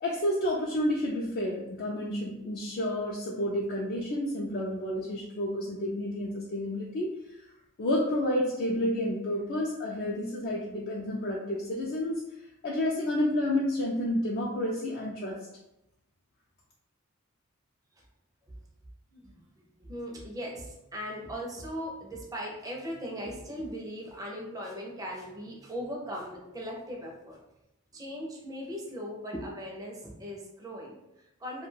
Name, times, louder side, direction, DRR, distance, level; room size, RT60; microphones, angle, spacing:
voice 1, 0.0-7.5 7.8-12.2 12.6-15.4, left 1 dB, 45° left, -4 dB, 0.4 m, -30 dB
voice 2, 19.1-27.4 27.9-31.7, equal, 15° right, -2 dB, 0.4 m, -39 dB
2.3 x 2.2 x 3.2 m, 0.88 s
head